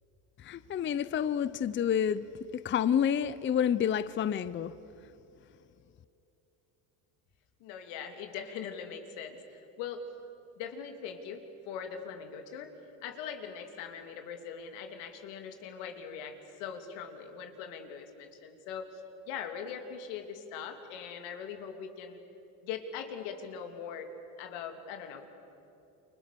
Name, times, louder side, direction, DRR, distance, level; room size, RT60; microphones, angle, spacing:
voice 1, 0.4-2.3 2.5-4.7, left 9 dB, 25° left, 15 dB, 0.6 m, -29 dB
voice 2, 7.6-10.0 10.6-12.7 13.0-22.2 22.6-24.1 24.4-25.3, left 7 dB, 80° left, 5 dB, 3.0 m, -41 dB
29.0 x 24.5 x 6.9 m, 2.9 s
supercardioid pair, 110°, 45 cm